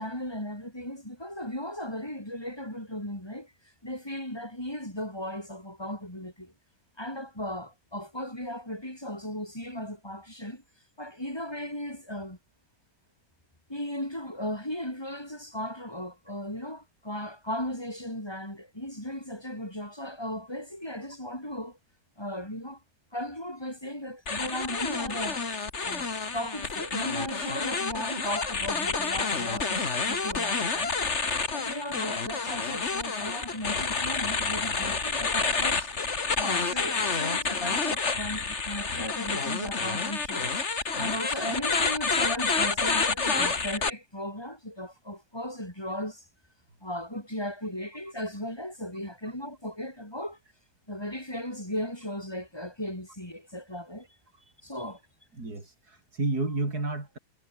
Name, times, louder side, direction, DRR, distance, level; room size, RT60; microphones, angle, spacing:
voice 1, 0.0-3.5 3.8-6.5 7.0-10.6 11.0-12.4 13.7-21.8 22.2-22.8 23.1-25.4 25.8-26.1 26.3-31.0 31.5-35.9 36.4-40.6 41.0-46.2 46.8-50.4 50.9-54.1 54.6-55.0, left 1 dB, 15° left, 6.5 m, -36 dB
sound 1, 24.3-43.9, left 4 dB, 45° left, 2.4 m, -29 dB
voice 2, 55.3-57.2, right 2 dB, 70° right, 5.7 m, -31 dB
omnidirectional pair, 1.7 m